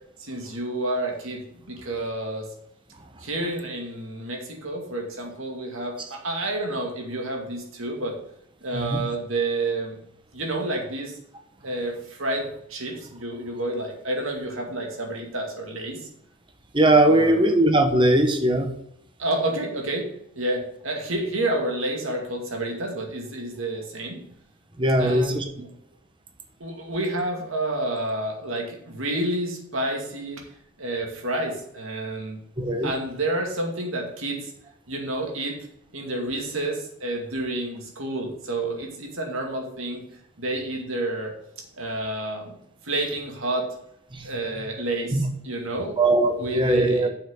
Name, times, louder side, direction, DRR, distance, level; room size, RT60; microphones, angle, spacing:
voice 1, 0.2-2.5 3.2-8.2 8.6-10.0 10.3-11.1 11.6-16.0 17.1-17.5 19.2-20.1 20.3-24.2 25.0-25.4 26.6-30.4 30.8-32.4 32.8-34.5 34.9-35.6 35.9-40.0 40.4-41.3 41.7-42.5 42.8-43.7 44.2-46.0 46.4-47.1, right 2 dB, 70° right, 1 dB, 2.2 m, -29 dB
voice 2, 16.7-18.7 24.8-25.4 32.6-32.9 44.1-44.3 45.1-45.2 46.0-47.1, right 1 dB, 25° right, 5 dB, 1.0 m, -20 dB
7.1 x 5.9 x 6.4 m, 0.74 s
head